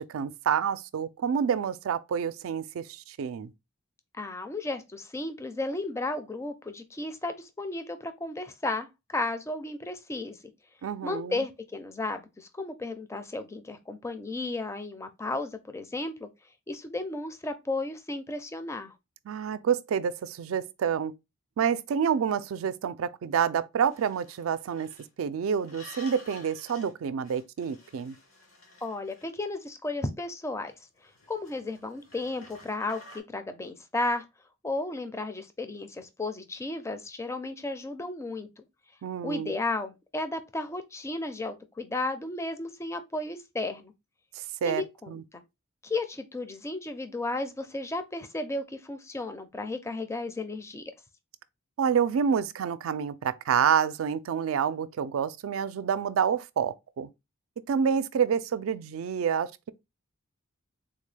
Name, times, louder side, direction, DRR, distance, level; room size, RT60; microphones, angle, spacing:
voice 1, 0.0-3.5 10.8-11.4 19.3-21.1 21.6-24.9 25.2-28.1 39.0-39.5 44.6-45.2 51.8-57.1 57.7-59.7, right 7 dB, 80° right, 0.4 m, -28 dB
voice 2, 4.2-10.4 11.0-16.3 16.7-18.9 28.8-30.7 31.3-34.2 34.6-38.6 39.2-43.9 44.6-45.1 45.8-50.8, left 2 dB, 15° left, 0.4 m, -34 dB
sound 1, 23.9-25.1 25.6-26.9 27.2-29.6 30.7-33.2, left 1 dB, 85° left, 1.1 m, -52 dB
3.7 x 2.2 x 3.2 m
head